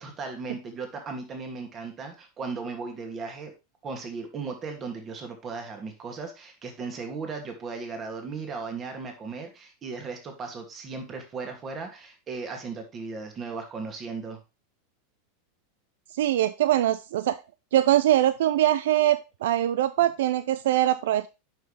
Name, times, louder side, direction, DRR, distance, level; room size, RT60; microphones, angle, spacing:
voice 1, 0.0-3.5 3.8-14.4, right 4 dB, 30° right, 4 dB, 2.5 m, -36 dB
voice 2, 16.1-17.4 17.7-21.3, right 13 dB, 70° right, 14 dB, 0.4 m, -22 dB
9.0 x 5.6 x 3.3 m, 0.27 s
hypercardioid pair, 95°, 0 cm